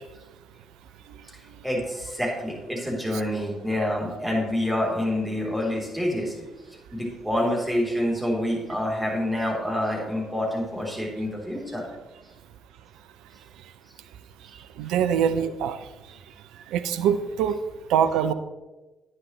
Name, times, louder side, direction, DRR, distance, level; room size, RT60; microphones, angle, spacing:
voice 1, 1.6-6.5 6.9-11.9, left 1 dB, 10° right, -3 dB, 3.6 m, -27 dB
voice 2, 14.8-15.8 16.7-17.6 17.9-18.3, right 8 dB, 65° right, 12 dB, 0.4 m, -23 dB
10.5 x 9.3 x 3.2 m, 1.2 s
figure-of-eight pair, 40°, 0 cm